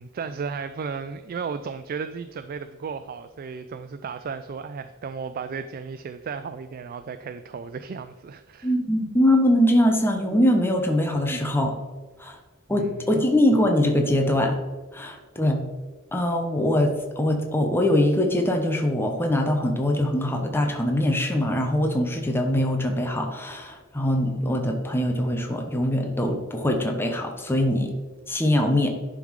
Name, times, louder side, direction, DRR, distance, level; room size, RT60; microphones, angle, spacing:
voice 1, 0.0-8.7 12.7-13.1, right 5 dB, 45° right, 10 dB, 0.3 m, -34 dB
voice 2, 8.6-11.8 12.2-12.4 12.7-14.6 14.9-15.6 16.1-28.0 28.3-28.9, left 1 dB, 10° left, 3 dB, 0.8 m, -22 dB
10.5 x 3.7 x 4.7 m, 1.3 s
head